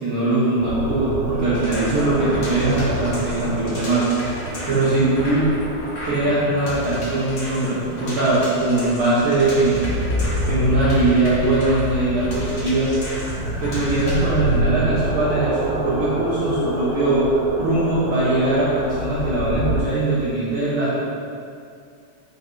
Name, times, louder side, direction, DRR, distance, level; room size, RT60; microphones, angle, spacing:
voice 1, 0.0-4.1 4.7-5.5 6.0-9.9 10.5-13.0 13.6-17.2 17.6-21.0, right 2 dB, 60° right, -9 dB, 1.4 m, -21 dB
sound 1, 0.6-19.8, equal, 80° right, 2.3 m, -28 dB
sound 2, 1.5-14.2, equal, 85° left, 0.6 m, -34 dB
5.1 x 5.1 x 3.9 m, 2.4 s
omnidirectional pair, 3.5 m